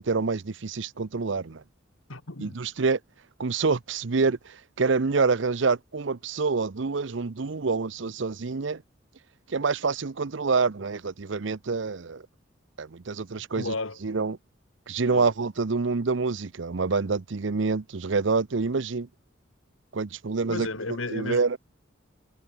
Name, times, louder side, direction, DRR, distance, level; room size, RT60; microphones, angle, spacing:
voice 1, 0.0-1.6 2.4-3.0 3.4-8.8 9.5-12.2 12.8-13.7 14.0-14.4 14.9-19.1 19.9-20.7 21.1-21.6, right 4 dB, 65° right, 0.7 m, -27 dB
voice 2, 2.1-2.6 13.4-14.0 15.1-15.3 20.5-21.4, left 2 dB, 85° left, 2.8 m, -33 dB
head